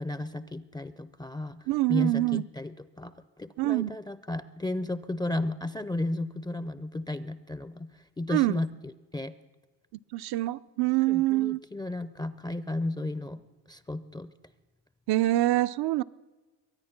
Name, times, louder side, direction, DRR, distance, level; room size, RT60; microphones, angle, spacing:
voice 1, 0.0-1.6 1.9-3.1 3.4-9.3 11.1-14.3, left 2 dB, 10° left, 14 dB, 0.4 m, -34 dB
voice 2, 1.7-2.4 3.6-4.0 8.3-8.5 10.1-11.6 15.1-16.0, right 17 dB, 65° right, 17 dB, 0.6 m, -25 dB
23.0 x 9.4 x 5.9 m, 1.3 s
cardioid pair, 90°, 42 cm